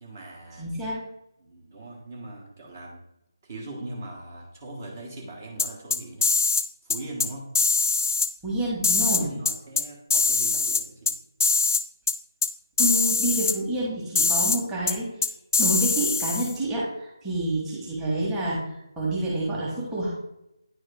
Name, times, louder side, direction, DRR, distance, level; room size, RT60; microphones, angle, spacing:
voice 1, 0.0-0.7 1.4-3.0 3.4-6.3 6.8-7.5 9.1-11.1, right 2 dB, 35° right, -2 dB, 1.4 m, -40 dB
voice 2, 0.6-1.0 8.4-9.3 12.8-15.1 15.6-20.1, right 1 dB, 10° right, -8 dB, 1.5 m, -28 dB
sound 1, 5.6-6.6 6.9-7.3 7.6-8.3 8.8-9.8 10.1-11.1 11.4-11.8 12.1-12.2 12.4-12.5 12.8-13.5 14.2-14.6 14.9-15.0 15.2-16.5, left 4 dB, 45° left, 0.5 m, -22 dB
9.7 x 3.6 x 3.5 m, 0.85 s
figure-of-eight pair, 155°, 2 cm